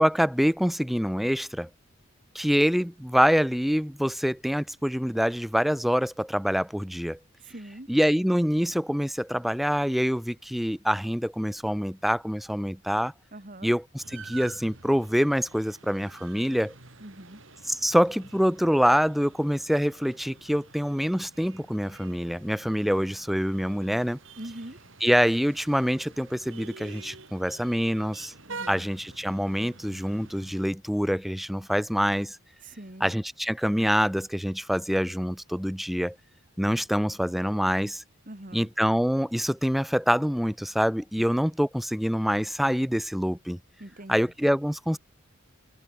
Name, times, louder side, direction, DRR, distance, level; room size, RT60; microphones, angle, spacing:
voice 1, 0.0-1.7 2.3-7.2 7.9-13.1 13.6-16.7 17.7-24.2 25.0-28.3 28.7-32.4 33.0-36.2 36.6-38.0 38.5-43.6 44.1-45.0, equal, ahead, 0.4 m, -25 dB
voice 2, 7.4-7.9 13.3-13.7 17.0-17.4 24.4-24.8 28.5-28.8 32.6-33.1 38.3-38.7 43.8-44.2, right 1 dB, 40° right, 2.1 m, -42 dB
sound 1, 14.0-30.7, right 4 dB, 65° right, 5.0 m, -48 dB
head